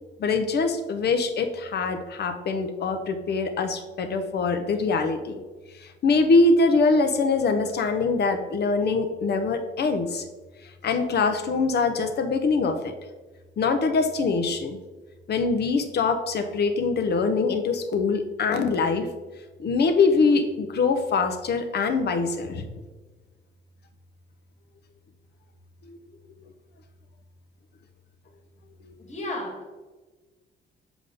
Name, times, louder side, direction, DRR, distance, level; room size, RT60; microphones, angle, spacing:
voice 1, 0.2-5.4 5.8-10.2 10.8-12.9 13.6-14.8 15.3-19.1 19.6-22.7 25.9-26.0 28.8-28.9, left 4 dB, 55° left, 7 dB, 0.8 m, -23 dB
voice 2, 29.0-29.7, left 1 dB, 35° left, 1 dB, 1.7 m, -33 dB
7.1 x 4.0 x 3.5 m, 1.3 s
cardioid pair, 90°, 20 cm